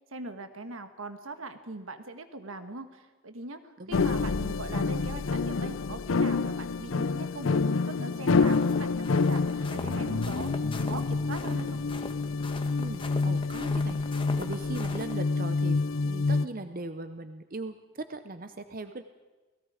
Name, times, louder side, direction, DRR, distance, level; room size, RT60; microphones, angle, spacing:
voice 1, 0.1-11.8, right 2 dB, 80° right, 9 dB, 1.6 m, -41 dB
voice 2, 3.8-4.1 12.8-14.0 14.4-19.0, right 2 dB, 40° right, 9 dB, 0.7 m, -39 dB
sound 1, 3.9-16.5, left 4 dB, 75° left, 0.6 m, -28 dB
sound 2, 8.5-15.1, left 2 dB, 25° left, 1.3 m, -42 dB
29.5 x 18.0 x 5.0 m, 1.2 s
head